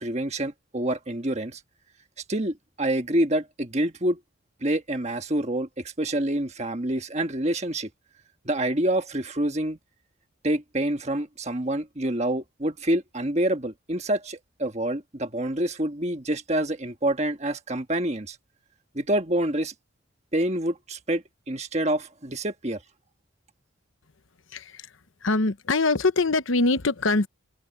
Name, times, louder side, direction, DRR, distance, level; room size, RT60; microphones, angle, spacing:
voice 1, 0.0-1.6 2.3-4.2 4.6-7.9 8.4-9.8 10.4-18.4 18.9-19.7 20.3-22.8, right 1 dB, 30° right, 1.5 m, -27 dB
voice 2, 24.5-24.9 25.2-27.3, left 3 dB, 70° left, 0.9 m, -23 dB
open air
head